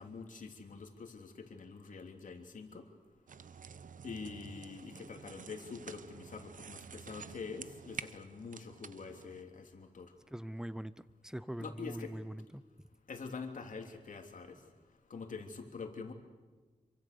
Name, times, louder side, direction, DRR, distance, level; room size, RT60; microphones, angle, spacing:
voice 1, 0.0-2.9 4.0-10.1 11.6-12.1 13.1-14.6 15.1-16.1, left 4 dB, 65° left, 4 dB, 3.1 m, -45 dB
sound 1, 3.3-9.4, right 6 dB, 70° right, 0.9 m, -50 dB
voice 2, 10.3-12.6, equal, 5° right, 16 dB, 0.7 m, -43 dB
27.0 x 24.5 x 6.8 m, 1.3 s
wide cardioid pair, 115°, 14 cm